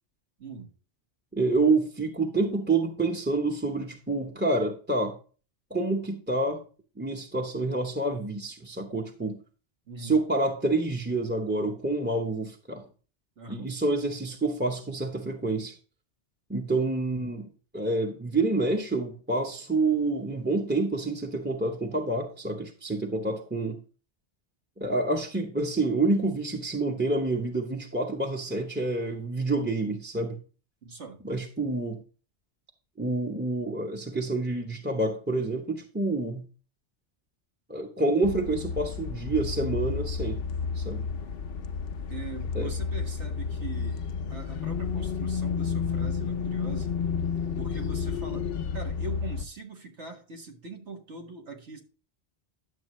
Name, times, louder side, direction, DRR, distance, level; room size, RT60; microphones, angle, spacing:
voice 1, 0.4-0.7 9.9-10.2 13.4-13.7 30.8-31.2 42.1-47.0 47.6-48.5 48.7-51.8, right 4 dB, 75° right, 2.0 m, -42 dB
voice 2, 1.3-5.2 5.7-6.6 7.0-9.4 10.0-12.8 13.5-15.7 16.5-17.5 17.7-23.8 24.8-30.4 31.2-32.0 33.0-36.5 37.7-40.4 40.7-41.1 42.5-42.7, right 2 dB, 10° right, 0.8 m, -28 dB
sound 1, 38.2-49.4, left 6 dB, 60° left, 0.8 m, -31 dB
11.0 x 7.3 x 3.1 m
omnidirectional pair, 1.2 m